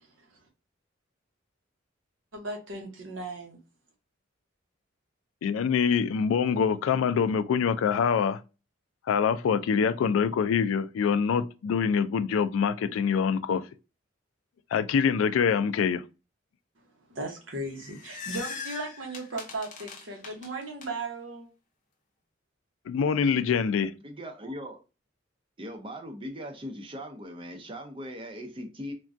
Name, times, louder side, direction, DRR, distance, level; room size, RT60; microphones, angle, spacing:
voice 1, 2.3-3.6 17.1-21.5, right 2 dB, 70° right, 0.9 m, -36 dB
voice 2, 5.4-8.4 9.1-13.6 14.7-16.0 22.9-23.9, left 6 dB, 85° left, 0.3 m, -25 dB
sound 1, 17.6-20.9, left 5 dB, 40° left, 0.6 m, -41 dB
voice 3, 24.0-24.8 25.6-28.9, equal, 25° right, 0.6 m, -39 dB
3.4 x 2.2 x 2.5 m
head